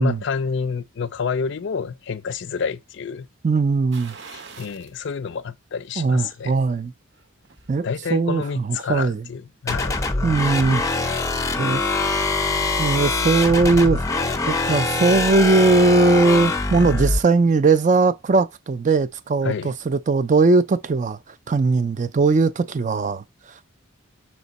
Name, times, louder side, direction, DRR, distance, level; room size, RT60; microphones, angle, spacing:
voice 1, 0.0-3.3 4.3-6.6 7.8-10.0 19.4-19.8, left 5 dB, 60° left, 0.4 m, -28 dB
voice 2, 3.4-4.1 6.0-6.9 7.7-9.3 10.2-10.8 11.6-11.8 12.8-14.1 14.5-21.2 21.5-23.2, right 3 dB, 35° right, 0.4 m, -19 dB
sound 1, 3.9-5.0 5.4-5.5 7.0-7.8 8.1-8.2, right 5 dB, 55° right, 0.8 m, -43 dB
sound 2, 9.7-17.2, left 3 dB, 15° left, 0.6 m, -23 dB
6.0 x 4.3 x 4.1 m
head